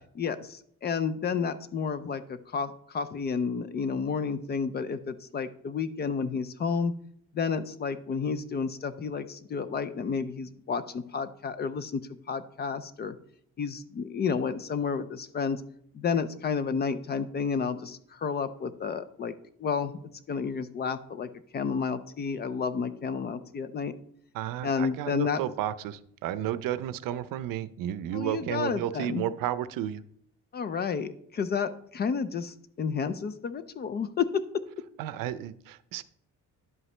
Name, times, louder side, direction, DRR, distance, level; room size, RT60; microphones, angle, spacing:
voice 1, 0.2-6.9 7.3-12.0 12.3-13.2 13.6-15.6 15.9-19.3 19.6-20.0 20.3-23.9 24.6-25.4 28.1-29.3 30.5-34.4, left 5 dB, 30° left, 13 dB, 0.4 m, -31 dB
voice 2, 24.3-30.0 35.0-36.0, right 11 dB, 75° right, 14 dB, 0.6 m, -32 dB
10.5 x 7.9 x 3.2 m, 0.66 s
cardioid pair, 175°, 33 cm